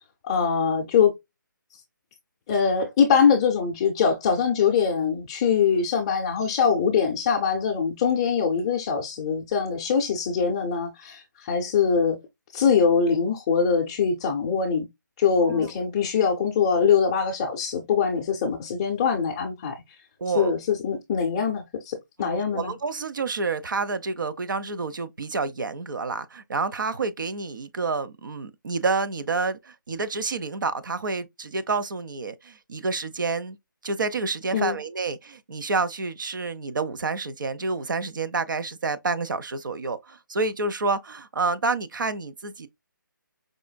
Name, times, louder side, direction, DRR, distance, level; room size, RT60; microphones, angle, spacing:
voice 1, 0.2-1.1 2.5-12.2 12.5-14.9 15.2-19.8 20.4-22.7 34.5-34.8, left 6 dB, 20° left, 0.5 m, -23 dB
voice 2, 20.2-20.5 22.2-33.6 33.8-42.7, right 4 dB, 70° right, 0.6 m, -29 dB
4.9 x 2.5 x 2.2 m
hypercardioid pair, 160°, 11 cm